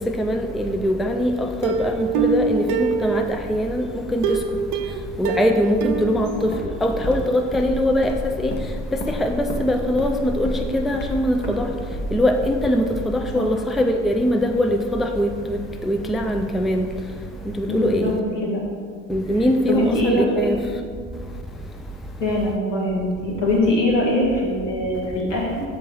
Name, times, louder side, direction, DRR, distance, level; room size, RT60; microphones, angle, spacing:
voice 1, 0.2-4.4 5.2-6.3 6.8-8.5 9.1-11.7 12.1-15.6 15.8-16.9 17.6-18.1 19.1-20.5, equal, ahead, 0.3 m, -22 dB
Plucked string instrument, 1.6-3.6 4.2-7.0 7.3-7.4 7.8-7.9, right 5 dB, 55° right, 0.5 m, -25 dB
Walk footsteps, 5.9-13.8, left 1 dB, 30° left, 0.9 m, -33 dB
voice 2, 17.7-18.6 19.7-20.5 22.2-25.6, left 1 dB, 85° left, 1.5 m, -22 dB
6.7 x 3.7 x 4.6 m
hypercardioid pair, 55°, 37 cm